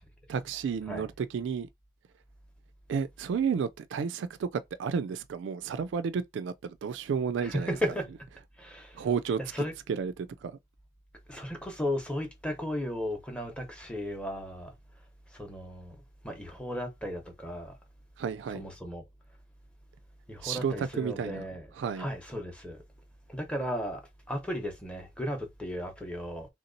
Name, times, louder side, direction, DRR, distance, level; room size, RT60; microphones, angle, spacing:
voice 1, 0.3-1.7 2.9-7.8 9.0-9.4 9.9-10.1 10.4-10.5 18.2-18.6 20.4-21.4 21.8-22.1, right 6 dB, 70° right, 0.3 m, -31 dB
voice 2, 7.4-8.1 8.6-9.1 9.4-9.7 11.3-14.7 15.3-16.0 16.2-17.8 18.5-19.0 20.3-21.7 22.0-22.8 23.3-24.0 24.3-26.5, equal, 5° left, 0.8 m, -35 dB
3.5 x 2.9 x 2.6 m
head